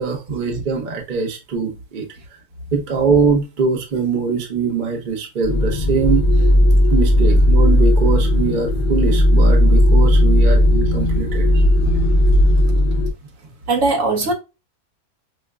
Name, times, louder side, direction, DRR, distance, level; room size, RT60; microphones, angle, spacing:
voice 1, 0.0-2.1 2.7-6.2 6.9-11.4, right 5 dB, 40° right, 0.8 m, -22 dB
sound 1, 5.4-13.1, left 1 dB, 85° left, 0.4 m, -15 dB
voice 2, 11.5-12.4 13.4-14.3, right 3 dB, 60° right, 1.4 m, -22 dB
5.2 x 2.2 x 2.2 m
omnidirectional pair, 1.5 m